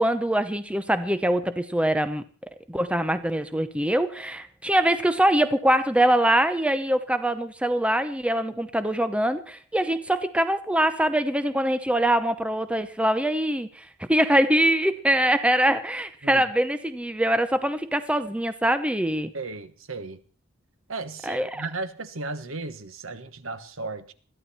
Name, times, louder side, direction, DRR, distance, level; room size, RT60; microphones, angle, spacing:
voice 1, 0.0-2.2 2.7-19.3 21.2-21.6, right 1 dB, 5° right, 0.8 m, -23 dB
voice 2, 19.3-20.2 20.9-24.1, right 3 dB, 70° right, 1.4 m, -35 dB
21.5 x 14.0 x 4.3 m
head